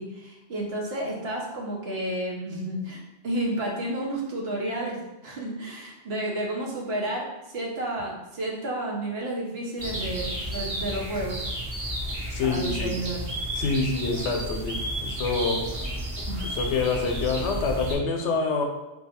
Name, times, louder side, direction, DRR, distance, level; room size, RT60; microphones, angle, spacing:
voice 1, 0.0-5.0 5.2-11.5 12.4-13.3 16.3-16.5, right 1 dB, 65° right, -2 dB, 1.0 m, -31 dB
sound 1, 9.8-18.0, equal, 35° right, 0.8 m, -32 dB
voice 2, 12.3-13.0 13.5-15.7 16.4-18.6, left 4 dB, 90° left, 3 dB, 0.9 m, -26 dB
2.7 x 2.3 x 4.1 m, 1.0 s
omnidirectional pair, 1.1 m